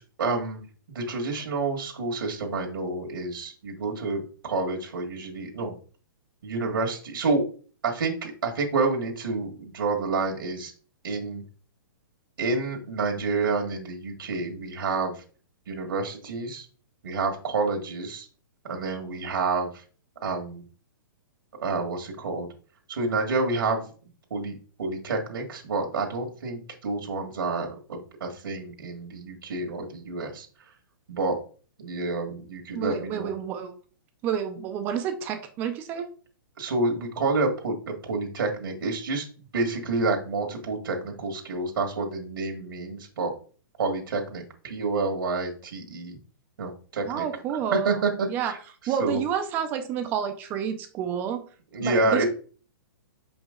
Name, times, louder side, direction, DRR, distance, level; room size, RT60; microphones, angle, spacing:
voice 1, 0.0-5.7 6.4-7.4 7.8-10.7 11.0-11.4 12.4-15.2 15.7-16.7 17.0-18.3 18.6-19.8 20.2-20.6 21.6-22.5 22.9-23.9 24.3-30.7 31.1-31.4 31.8-33.3 36.6-39.3 39.5-43.3 43.8-46.2 46.6-47.2 47.7-48.6 48.8-49.2 51.7-52.3, right 3 dB, 80° right, 2 dB, 1.6 m, -29 dB
voice 2, 32.7-33.7 34.2-36.1 47.1-47.9 48.3-48.5 48.9-51.4 51.8-52.2, right 8 dB, 15° right, 7 dB, 0.5 m, -29 dB
5.9 x 5.1 x 3.6 m, 0.40 s
hypercardioid pair, 170°, 12 cm